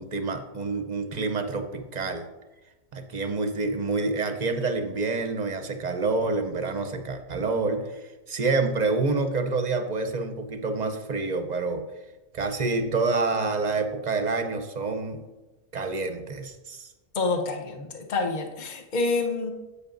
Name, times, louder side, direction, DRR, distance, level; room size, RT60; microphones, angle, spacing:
voice 1, 0.0-2.3 2.9-11.8 12.3-15.2 15.7-16.9, right 3 dB, 40° right, 6 dB, 0.7 m, -27 dB
voice 2, 17.1-19.5, left 3 dB, 40° left, 3 dB, 1.0 m, -27 dB
10.5 x 8.3 x 2.6 m, 1.1 s
omnidirectional pair, 1.3 m